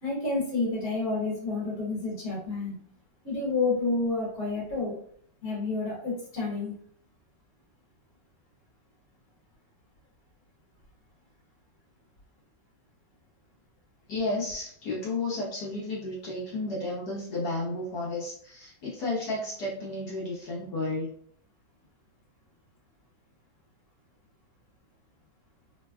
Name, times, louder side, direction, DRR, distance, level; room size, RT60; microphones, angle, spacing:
voice 1, 0.0-2.8 3.2-5.0 5.4-6.7, left 3 dB, 45° left, -8 dB, 1.4 m, -29 dB
voice 2, 14.1-21.1, left 2 dB, 65° left, -5 dB, 1.2 m, -32 dB
3.3 x 2.1 x 2.3 m, 0.63 s
omnidirectional pair, 2.0 m